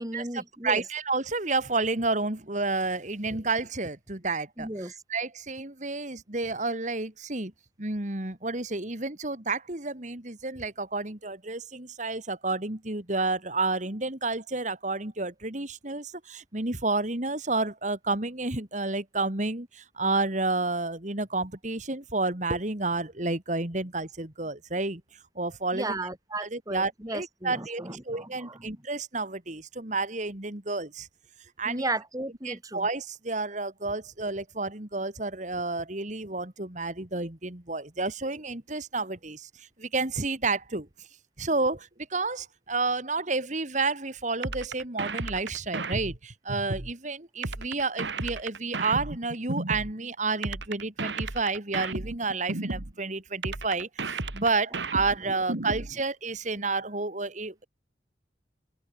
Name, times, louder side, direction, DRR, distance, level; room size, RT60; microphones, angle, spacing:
voice 1, 0.0-0.8 4.6-5.0 25.7-28.7 31.6-32.9 55.3-55.7, right 2 dB, 20° right, 4.3 m, -35 dB
voice 2, 0.6-7.5 7.8-25.0 25.4-26.0 26.4-31.1 31.6-31.9 32.4-40.9 41.4-57.6, right 3 dB, 45° right, 2.7 m, -30 dB
sound 1, 44.4-46.9 47.4-49.9 50.4-52.9 53.4-55.9, right 2 dB, 85° right, 2.2 m, -33 dB
open air
head